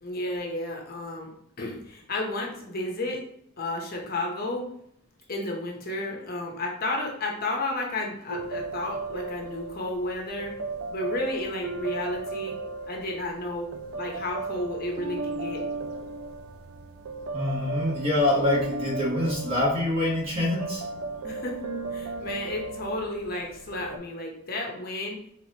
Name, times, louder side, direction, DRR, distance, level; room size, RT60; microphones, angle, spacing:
voice 1, 0.0-1.3 1.6-3.2 3.6-4.7 5.3-10.5 10.9-12.6 12.9-13.7 13.9-15.6 21.2-21.6 21.9-25.2, left 2 dB, 45° left, 0 dB, 0.9 m, -32 dB
sound 1, 8.3-24.0, right 3 dB, 80° right, 0.5 m, -36 dB
voice 2, 17.3-20.8, left 1 dB, 25° right, -4 dB, 1.3 m, -25 dB
4.5 x 3.8 x 2.9 m, 0.72 s
head